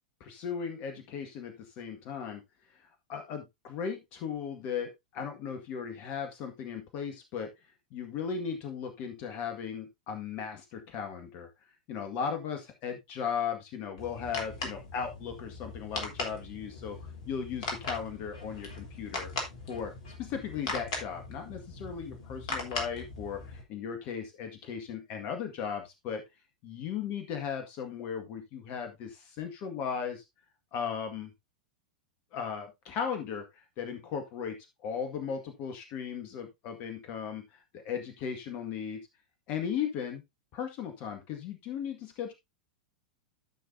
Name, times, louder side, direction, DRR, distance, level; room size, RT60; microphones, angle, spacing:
voice 1, 0.2-2.4 3.1-7.5 7.9-11.5 11.9-19.3 19.7-19.9 20.2-26.2 26.6-30.2 30.7-31.3 32.3-37.6 37.8-39.1 39.5-40.2 40.5-42.3, left 7 dB, 45° left, 6 dB, 1.9 m, -37 dB
sound 1, 14.0-23.6, left 3 dB, 60° left, 3.6 m, -39 dB
13.5 x 6.1 x 2.7 m, 0.20 s
figure-of-eight pair, 95°, 4 cm